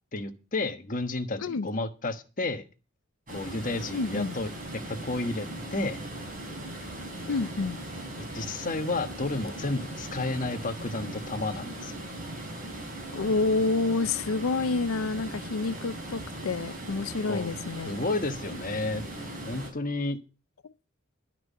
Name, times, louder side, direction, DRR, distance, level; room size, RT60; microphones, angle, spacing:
voice 1, 0.1-2.6 3.3-4.5 4.9-6.0 8.3-12.0 17.3-17.5 17.8-19.0 19.4-20.2, left 2 dB, 40° left, 1.3 m, -31 dB
voice 2, 1.4-1.7 3.9-4.4 7.3-7.8 13.1-18.0 20.6-20.7, left 3 dB, 85° left, 0.6 m, -28 dB
sound 1, 3.3-19.7, right 1 dB, 40° right, 4.5 m, -39 dB
11.5 x 6.0 x 8.2 m
head